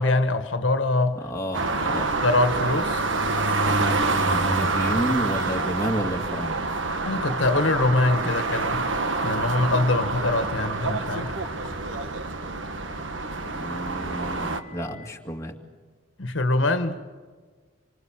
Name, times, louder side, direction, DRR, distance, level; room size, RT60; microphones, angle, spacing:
voice 1, 0.0-1.2 2.2-3.0 7.0-8.8 9.2-11.3 16.2-17.0, left 2 dB, 75° left, 1.5 m, -23 dB
voice 2, 1.1-2.1 3.8-6.6 13.5-15.6, equal, 15° left, 2.2 m, -30 dB
sound 1, 1.5-14.6, right 3 dB, 70° right, 1.5 m, -27 dB
sound 2, 7.1-11.7 12.8-15.1, left 2 dB, 20° right, 4.2 m, -45 dB
27.0 x 25.0 x 7.4 m
head